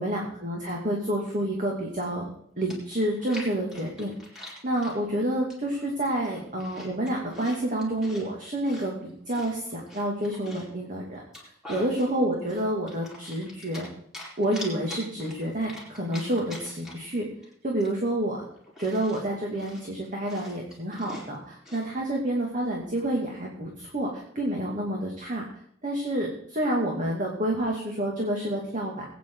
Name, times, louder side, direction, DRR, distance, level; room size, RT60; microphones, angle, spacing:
voice 1, 0.0-2.3 2.6-4.1 4.6-13.9 14.4-17.3 17.6-18.5 18.8-25.4 25.8-29.1, right 1 dB, 40° right, -1 dB, 2.5 m, -29 dB
Chewing mastication, 2.3-2.4 2.7-5.0 5.5-5.9 6.2-8.3 8.6-10.8 11.2-12.1 12.5-13.9 14.1-17.1 17.4-17.5 17.8-21.9, left 1 dB, ahead, 4.6 m, -44 dB
21.5 x 9.4 x 4.0 m, 0.66 s
head